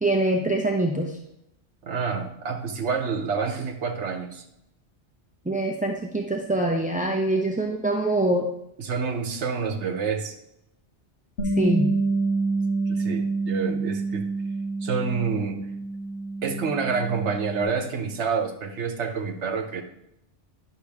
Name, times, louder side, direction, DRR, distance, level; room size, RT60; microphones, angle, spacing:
voice 1, 0.0-1.1 5.5-8.5 11.6-11.9, right 2 dB, 10° right, 0 dB, 0.4 m, -24 dB
voice 2, 1.8-4.4 8.8-10.4 12.9-14.2 14.8-15.6 16.4-19.8, right 5 dB, 70° right, 5 dB, 1.2 m, -28 dB
Bass guitar, 11.4-17.6, right 3 dB, 60° left, 2.1 m, -27 dB
10.0 x 6.4 x 3.5 m, 0.82 s
omnidirectional pair, 1.2 m